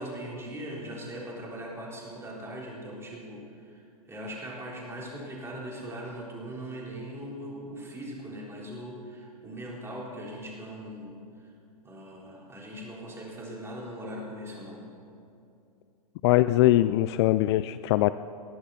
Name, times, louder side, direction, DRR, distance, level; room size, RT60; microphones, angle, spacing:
voice 1, 0.0-3.8 4.1-11.2 11.8-14.8, equal, 15° right, -3 dB, 4.0 m, -40 dB
voice 2, 16.2-18.1, left 15 dB, 45° left, 14 dB, 0.4 m, -22 dB
20.0 x 12.0 x 4.3 m, 2.6 s
hypercardioid pair, 115°, 20 cm